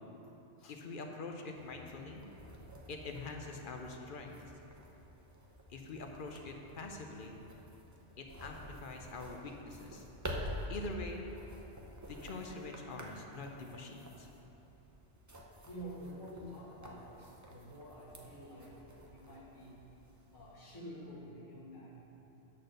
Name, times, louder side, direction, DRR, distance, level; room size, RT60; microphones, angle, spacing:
voice 1, 0.6-2.2 2.9-4.3 5.7-7.4 8.2-10.0 10.7-11.2 12.1-14.3, left 3 dB, 50° left, 3 dB, 0.7 m, -44 dB
sound 1, 1.5-20.7, equal, 20° right, 0.5 m, -49 dB
voice 2, 15.7-18.7 19.1-19.8 20.3-21.9, equal, 80° left, -8 dB, 2.4 m, -48 dB
8.5 x 4.2 x 6.4 m, 3.0 s
omnidirectional pair, 1.2 m